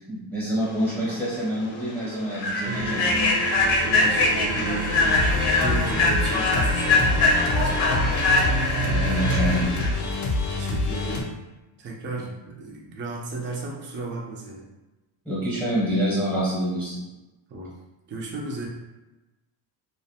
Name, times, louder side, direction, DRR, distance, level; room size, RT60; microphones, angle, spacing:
voice 1, 0.1-3.3 8.8-9.8 15.2-16.9, equal, 5° left, -8 dB, 0.7 m, -27 dB
Human voice / Train, 1.0-1.2 1.6-1.8 2.3-9.9, left 3 dB, 80° left, 0.7 m, -23 dB
sound 1, 2.6-9.6, right 3 dB, 75° right, 0.6 m, -31 dB
voice 2, 3.8-8.0 10.3-11.3 11.8-14.7 17.5-17.7 18.1-18.7, right 3 dB, 25° right, -2 dB, 0.4 m, -35 dB
sound 2, 4.9-11.2, left 2 dB, 40° left, 0.4 m, -27 dB
2.4 x 2.2 x 2.7 m, 1.1 s
cardioid pair, 150°, 48 cm